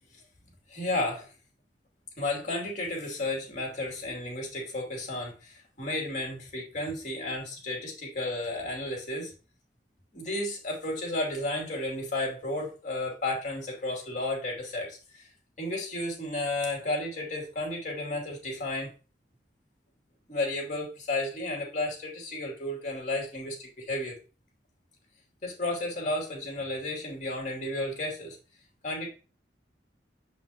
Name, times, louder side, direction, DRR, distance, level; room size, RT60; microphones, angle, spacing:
voice 1, 0.7-1.3 2.2-9.3 10.1-15.3 15.6-18.9 20.3-24.1 25.4-28.4 28.8-29.1, left 2 dB, 45° left, 0 dB, 2.5 m, -33 dB
6.5 x 5.6 x 2.8 m, 0.34 s
head